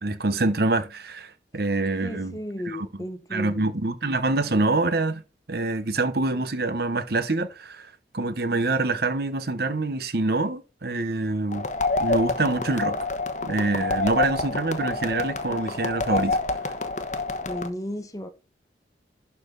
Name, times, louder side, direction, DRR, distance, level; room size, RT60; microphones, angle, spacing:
voice 1, 0.0-2.4 2.6-3.0 3.3-5.2 5.5-11.7 12.0-13.0 13.4-16.4, right 2 dB, 60° right, 1.0 m, -26 dB
voice 2, 2.0-3.7 17.5-18.3, left 1 dB, 20° left, 1.3 m, -34 dB
sound 1, 11.5-17.7, left 3 dB, 45° left, 1.2 m, -27 dB
12.0 x 4.2 x 3.9 m
head